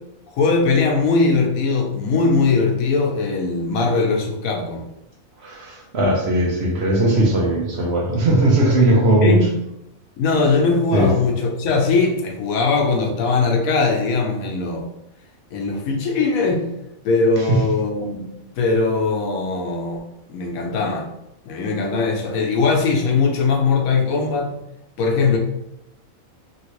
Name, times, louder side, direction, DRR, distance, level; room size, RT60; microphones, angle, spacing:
voice 1, 0.3-4.9 9.2-9.4 10.2-14.9 15.5-16.6 17.0-18.2 18.6-20.0 20.3-21.1 21.4-24.6 25.0-25.4, left 4 dB, 85° left, 2 dB, 1.1 m, -20 dB
voice 2, 5.4-9.4 10.9-11.1 17.5-17.6, right 1 dB, 55° right, -2 dB, 0.9 m, -18 dB
3.0 x 2.8 x 3.0 m, 0.84 s
omnidirectional pair, 1.4 m